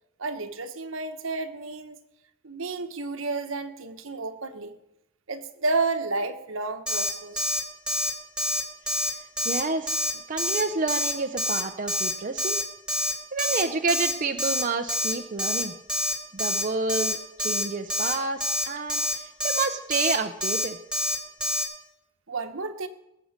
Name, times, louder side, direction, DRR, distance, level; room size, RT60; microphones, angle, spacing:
voice 1, 0.2-2.0 2.4-4.7 5.3-7.6 22.3-22.9, right 3 dB, 70° right, 8 dB, 1.2 m, -31 dB
Alarm, 6.9-7.1 7.4-7.6 7.9-8.1 8.4-8.6 8.9-9.1 9.4-9.6 9.9-10.1 10.4-10.6 10.9-11.1 11.4-11.6 11.9-12.1 12.4-12.6 12.9-13.1 13.4-13.6 13.9-14.1 14.4-14.6 14.9-15.1 15.4-15.6 15.9-16.1 16.4-16.6 16.9-17.1 17.4-17.6 17.9-18.1 18.4-18.6 18.9-19.1 19.4-19.6 19.9-20.1 20.4-20.6 20.9-21.1 21.4-21.6, left 1 dB, 5° right, 2.1 m, -26 dB
voice 2, 9.4-12.6 13.3-15.7 16.3-20.8, right 3 dB, 40° right, 5 dB, 0.7 m, -29 dB
20.5 x 7.7 x 6.6 m, 0.90 s
head